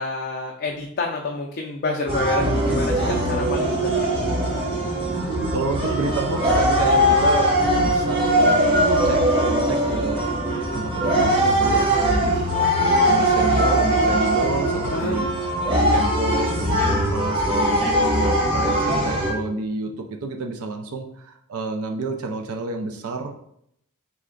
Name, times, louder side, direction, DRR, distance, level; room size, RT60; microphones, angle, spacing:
voice 1, 0.0-4.1 14.9-15.2, left 3 dB, 45° left, 0 dB, 0.4 m, -28 dB
sound 1, 2.1-19.3, right 1 dB, 25° right, 1.0 m, -20 dB
voice 2, 5.5-9.2 9.5-12.5 12.8-15.3 15.9-23.3, right 3 dB, 70° right, 4 dB, 0.5 m, -30 dB
3.7 x 3.2 x 3.8 m, 0.73 s
head